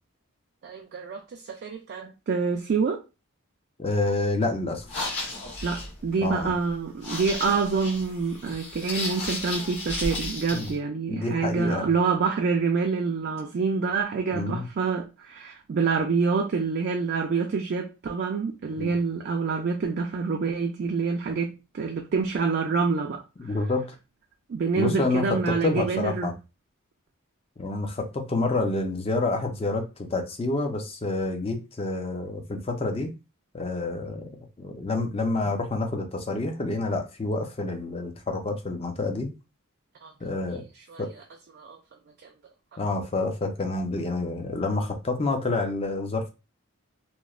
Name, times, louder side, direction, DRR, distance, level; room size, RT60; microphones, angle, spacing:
voice 1, 0.6-3.0 5.6-23.5 24.5-26.3 40.0-40.1 40.9-41.0 41.5-41.8 42.2-42.3, right 5 dB, 50° right, 0.3 m, -27 dB
voice 2, 3.8-4.9 6.2-6.5 10.5-10.7 11.1-11.9 14.3-14.7 18.8-18.9 23.4-24.0 24.8-26.3 27.6-33.1 33.5-34.3 34.6-39.3 40.2-40.6 41.0-41.1 42.8-46.3, left 2 dB, 25° left, 0.4 m, -28 dB
sound 1, 4.8-10.7, left 2 dB, 50° left, 1.1 m, -34 dB
3.0 x 2.0 x 2.3 m
head